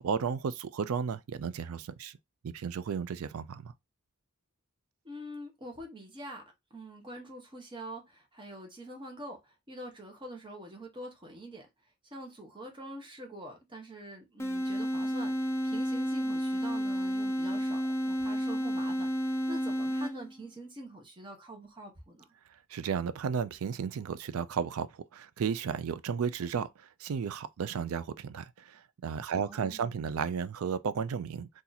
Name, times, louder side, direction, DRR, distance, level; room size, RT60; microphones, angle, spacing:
voice 1, 0.0-2.2 2.4-3.7 22.7-31.5, right 6 dB, 70° right, 0.4 m, -34 dB
voice 2, 5.0-6.4 6.7-11.7 12.0-22.2 29.3-30.0, right 1 dB, 20° right, 0.9 m, -45 dB
sound 1, 14.4-20.4, equal, 10° left, 0.4 m, -31 dB
2.8 x 2.5 x 3.9 m
head